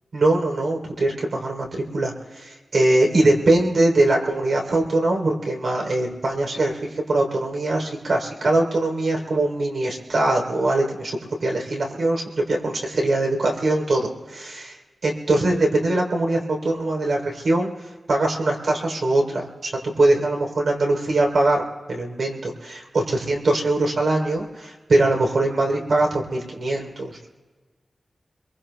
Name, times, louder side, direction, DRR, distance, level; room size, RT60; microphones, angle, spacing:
voice 1, 0.1-1.7 1.9-17.7 18.1-19.5 19.8-21.6 21.9-27.3, right 2 dB, 85° right, 0 dB, 3.4 m, -22 dB
26.5 x 23.0 x 2.3 m, 1.4 s
wide cardioid pair, 120°, 0 cm